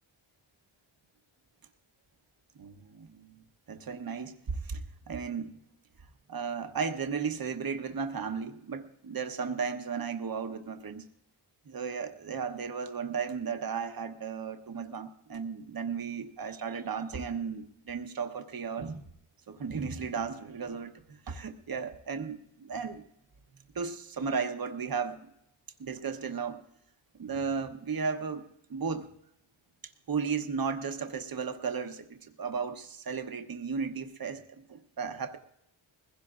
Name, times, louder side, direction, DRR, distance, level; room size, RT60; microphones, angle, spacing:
voice 1, 2.5-4.3 4.6-4.8 5.1-5.5 6.3-11.0 11.7-19.0 19.5-23.0 23.7-25.3 25.8-26.6 27.2-28.4 28.7-29.1 29.8-34.4 34.7-35.4, right 5 dB, 45° right, 7 dB, 1.0 m, -35 dB
21.0 x 16.0 x 2.5 m, 0.76 s
wide cardioid pair, 80°, 49 cm